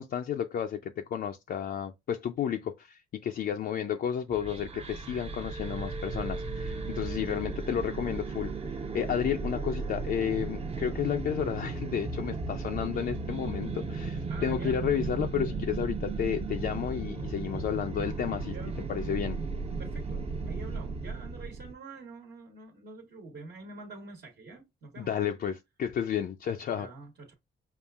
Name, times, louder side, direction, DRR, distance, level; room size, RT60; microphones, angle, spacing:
voice 1, 0.0-8.5 8.9-18.5 18.9-19.4 25.0-26.9, left 9 dB, 50° left, 0.4 m, -32 dB
sound 1, 4.3-21.7, right 4 dB, 30° right, 0.7 m, -35 dB
voice 2, 14.3-14.8 18.5-18.8 19.8-25.2 26.8-27.3, right 3 dB, 60° right, 1.3 m, -46 dB
5.4 x 2.4 x 2.3 m
cardioid pair, 90°, 20 cm